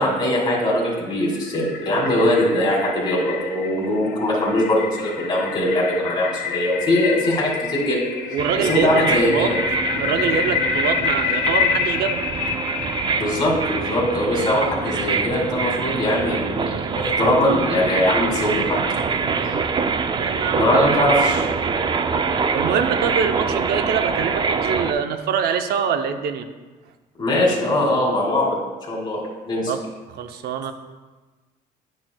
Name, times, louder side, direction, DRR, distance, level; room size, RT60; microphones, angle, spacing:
voice 1, 0.0-8.0 8.6-9.6 13.1-18.8 19.3-19.6 20.5-21.4 27.2-28.6 28.9-29.7, left 1 dB, 25° left, -4 dB, 2.3 m, -21 dB
sound 1, 0.8-14.2, left 7 dB, 80° left, 0.6 m, -28 dB
voice 2, 8.3-9.5 10.0-12.3 19.2-19.6 20.2-21.0 22.5-26.5 29.7-29.8 30.1-30.7, right 7 dB, 70° right, 8 dB, 0.7 m, -25 dB
sound 2, 8.4-24.9, right 5 dB, 30° right, 0.4 m, -24 dB
10.0 x 6.2 x 2.3 m, 1.3 s
cardioid pair, 110°, 17 cm